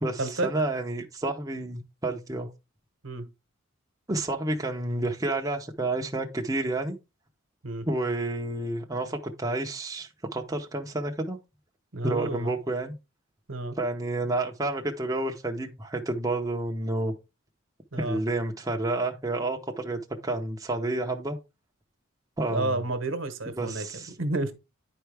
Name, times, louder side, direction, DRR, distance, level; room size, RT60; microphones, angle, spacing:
voice 1, 0.0-2.5 4.1-7.0 7.9-11.4 12.0-12.9 13.8-17.1 18.0-21.4 22.4-22.8 23.6-24.1, right 2 dB, 15° right, 0.7 m, -30 dB
voice 2, 11.9-12.5 13.5-13.8 17.9-18.2 22.5-23.9 24.2-24.5, right 2 dB, 65° right, 1.1 m, -30 dB
10.0 x 4.6 x 3.3 m
head